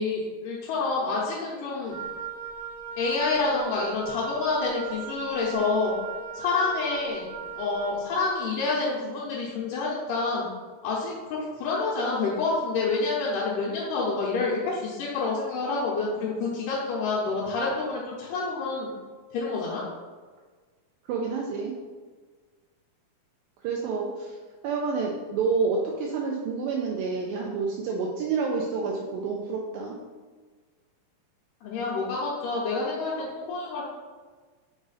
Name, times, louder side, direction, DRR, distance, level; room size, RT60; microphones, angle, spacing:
voice 1, 0.0-2.0 3.0-5.9 6.3-7.2 7.6-10.5 10.8-18.9 19.3-19.8 31.6-33.8, left 3 dB, 75° left, -6 dB, 2.2 m, -28 dB
Wind instrument woodwind instrument, 1.9-8.1, right 6 dB, 65° right, 1.9 m, -38 dB
voice 2, 21.1-21.7 23.6-24.3 24.6-30.0, right 4 dB, 80° right, 0 dB, 2.2 m, -28 dB
5.0 x 4.8 x 4.0 m, 1.4 s
omnidirectional pair, 4.2 m